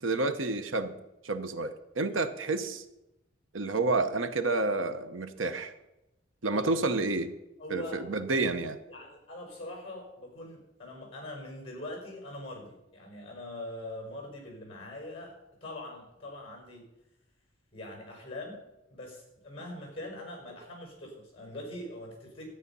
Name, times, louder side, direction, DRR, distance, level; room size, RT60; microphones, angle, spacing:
voice 1, 0.0-0.9 1.2-2.8 3.5-5.7 6.4-7.3 7.7-8.8, right 3 dB, 85° right, 9 dB, 1.0 m, -29 dB
voice 2, 7.6-8.0 8.9-15.3 15.6-16.8 17.7-18.6 18.9-22.5, left 1 dB, 30° left, 2 dB, 4.9 m, -42 dB
12.5 x 9.5 x 5.5 m, 0.92 s
head